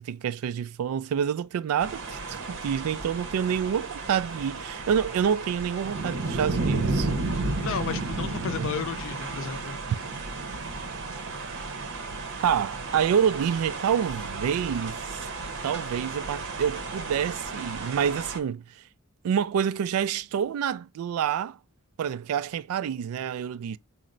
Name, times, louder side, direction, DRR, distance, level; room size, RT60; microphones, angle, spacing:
voice 1, 0.0-7.1 8.6-8.7 12.4-15.2 15.6-18.8 19.2-21.6 22.0-23.8, right 8 dB, 75° right, 0.3 m, -27 dB
sound 1, 1.8-18.4, right 3 dB, 60° right, 0.7 m, -33 dB
voice 2, 7.3-9.8, left 6 dB, 60° left, 0.5 m, -33 dB
4.3 x 2.0 x 3.7 m
head